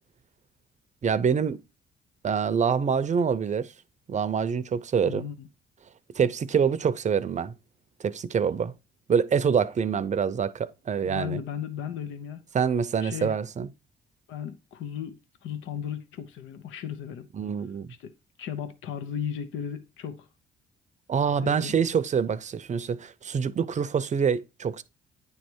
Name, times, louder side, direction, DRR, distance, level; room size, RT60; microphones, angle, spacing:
voice 1, 1.0-1.6 2.2-3.7 4.1-5.2 6.2-7.5 8.0-8.7 9.1-11.4 12.5-13.7 17.3-17.9 21.1-24.8, right 6 dB, 35° right, 0.6 m, -25 dB
voice 2, 5.0-5.5 11.0-12.4 13.0-13.3 14.3-17.3 18.0-18.1 18.4-20.3 21.4-21.8, left 8 dB, 85° left, 0.8 m, -35 dB
9.6 x 3.2 x 4.5 m
cardioid pair, 90°, 20 cm